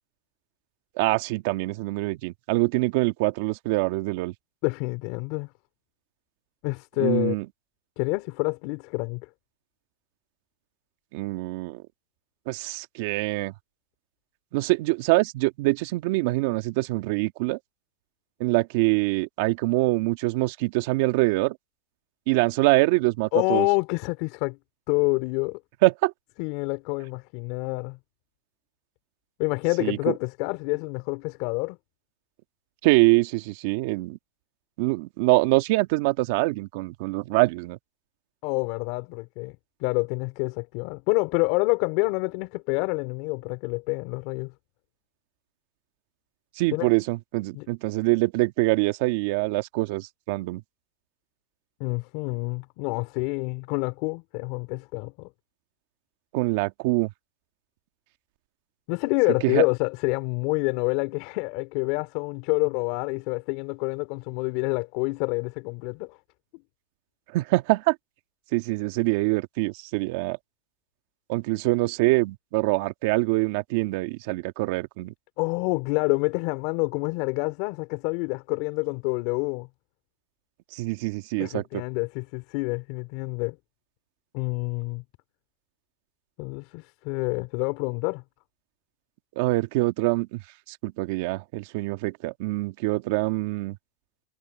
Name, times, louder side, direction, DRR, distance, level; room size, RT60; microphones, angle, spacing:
voice 1, 1.0-4.3 7.0-7.5 11.1-11.8 12.5-13.5 14.5-17.6 18.4-21.6 22.3-23.7 25.8-26.1 29.8-30.1 32.8-34.2 34.8-37.8 46.6-50.6 56.3-57.1 59.4-59.6 67.3-67.9 68.5-70.4 71.3-75.1 80.7-81.8 89.3-90.4 90.7-93.8, right 22 dB, 55° right, 1.5 m, -24 dB
voice 2, 4.6-5.5 6.6-7.3 8.0-9.3 23.3-24.6 24.9-25.6 26.4-28.0 29.4-31.8 38.4-39.5 39.8-44.5 46.7-46.9 47.5-47.7 51.8-55.3 58.9-66.2 75.4-79.7 81.4-83.6 84.3-85.0 86.4-88.2, left 28 dB, 50° left, 3.6 m, -27 dB
supercardioid pair, 145°, 0 cm